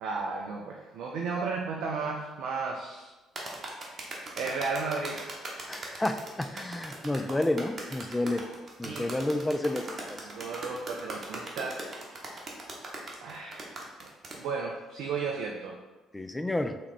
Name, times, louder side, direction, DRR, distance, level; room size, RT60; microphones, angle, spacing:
voice 1, 0.0-3.1 4.4-5.2 8.8-9.1 10.3-12.3 13.2-13.8 14.0-14.1 14.4-15.8, right 4 dB, 65° right, 0 dB, 0.4 m, -34 dB
sound 1, 3.4-14.4, right 2 dB, 45° right, 0.8 m, -39 dB
voice 2, 5.7-8.4 8.8-10.2 16.1-16.8, left 1 dB, 15° left, 8 dB, 0.3 m, -30 dB
3.5 x 2.9 x 3.3 m, 1.2 s
hypercardioid pair, 50°, 0 cm